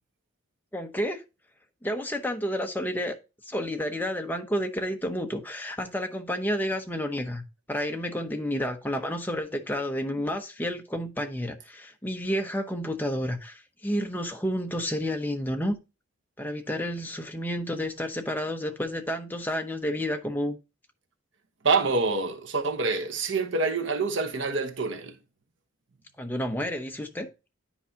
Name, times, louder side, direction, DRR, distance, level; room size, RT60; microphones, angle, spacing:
voice 1, 0.7-1.2 1.8-3.1 3.4-7.4 7.7-15.8 16.4-20.6 26.2-27.3, equal, 10° left, 0.8 m, -30 dB
voice 2, 21.6-25.2, right 4 dB, 65° right, 1.1 m, -26 dB
9.9 x 4.7 x 2.8 m
head